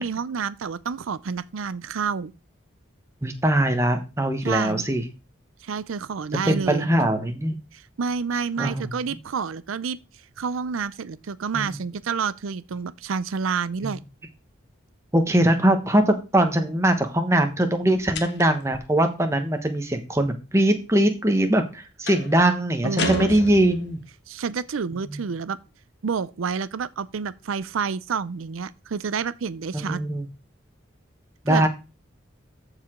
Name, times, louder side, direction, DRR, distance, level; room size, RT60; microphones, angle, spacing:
voice 1, 0.0-2.3 4.4-4.9 5.6-6.9 7.7-10.0 10.4-14.0 22.8-23.4 24.3-25.6 26.0-30.0 31.5-31.7, right 5 dB, 90° right, 0.5 m, -29 dB
voice 2, 3.2-5.0 6.5-7.6 8.6-8.9 11.5-11.7 13.8-13.9 15.1-24.0 25.1-25.2 29.7-30.3 31.4-31.7, right 1 dB, 15° right, 1.1 m, -21 dB
sound 1, 18.1-18.7 22.1-22.4 23.0-24.1, left 3 dB, 55° left, 1.2 m, -31 dB
14.0 x 4.9 x 3.7 m
head